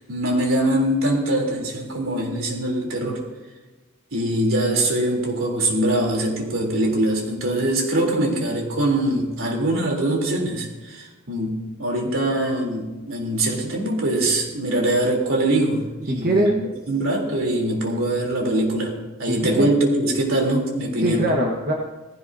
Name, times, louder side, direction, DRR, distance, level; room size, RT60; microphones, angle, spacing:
voice 1, 0.1-3.2 4.1-16.5 16.9-18.9 19.2-21.2, right 1 dB, 75° right, 0 dB, 3.5 m, -23 dB
voice 2, 16.1-16.5 19.3-19.7 21.0-21.7, right 1 dB, 50° right, -1 dB, 1.4 m, -21 dB
18.0 x 16.5 x 2.8 m, 1.2 s
head